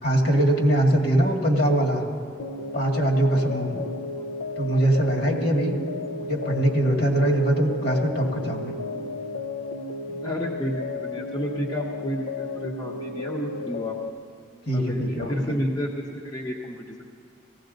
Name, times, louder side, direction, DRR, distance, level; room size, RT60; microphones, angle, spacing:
voice 1, 0.0-2.0 2.7-3.7 4.6-5.8 6.3-8.7 14.7-15.5, right 1 dB, 50° left, 1 dB, 1.8 m, -22 dB
sound 1, 2.4-14.1, left 3 dB, 70° left, 0.6 m, -33 dB
voice 2, 5.4-6.0 10.1-14.0 14.7-17.0, equal, 20° left, -2 dB, 0.9 m, -31 dB
18.0 x 16.0 x 4.0 m, 2.4 s
head